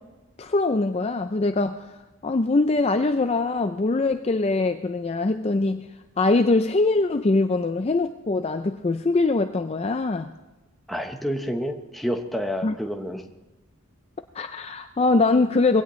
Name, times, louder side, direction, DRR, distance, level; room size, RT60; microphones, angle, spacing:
voice 1, 0.4-2.0 2.2-5.9 6.2-10.3 12.6-12.7 14.3-15.8, left 3 dB, 30° left, 8 dB, 0.4 m, -22 dB
voice 2, 10.9-13.2, equal, ahead, 3 dB, 1.0 m, -29 dB
22.0 x 17.0 x 3.2 m, 1.1 s
head